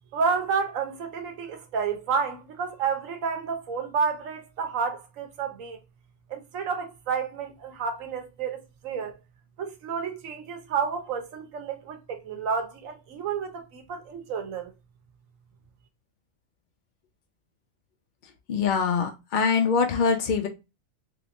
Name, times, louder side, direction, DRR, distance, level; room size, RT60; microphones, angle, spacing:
voice 1, 0.1-5.8 6.3-9.1 9.6-14.7, right 6 dB, 75° right, 1.1 m, -30 dB
voice 2, 18.5-20.5, left 5 dB, 70° left, 0.4 m, -23 dB
3.4 x 2.8 x 2.5 m
omnidirectional pair, 1.4 m